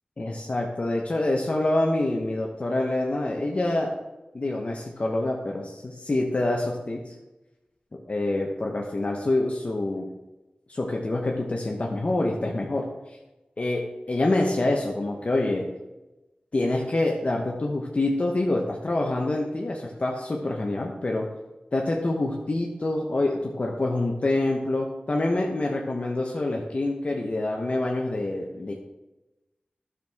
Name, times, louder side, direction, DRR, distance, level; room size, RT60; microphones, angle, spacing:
voice 1, 0.2-3.9 4.3-7.1 7.9-10.1 10.7-12.9 13.6-15.7 16.5-21.3 21.7-28.7, left 2 dB, 45° left, 0 dB, 0.9 m, -26 dB
11.5 x 6.2 x 3.5 m, 1.0 s
wide cardioid pair, 85°, 3 cm